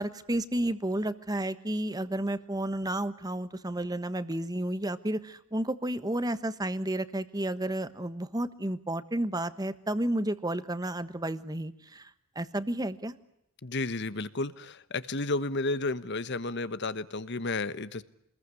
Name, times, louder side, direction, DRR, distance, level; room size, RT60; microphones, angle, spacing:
voice 1, 0.0-12.1 12.3-13.2, right 1 dB, 20° right, 13 dB, 1.3 m, -31 dB
voice 2, 13.6-18.0, left 2 dB, 55° left, 14 dB, 1.3 m, -32 dB
27.0 x 21.0 x 9.8 m, 0.79 s
head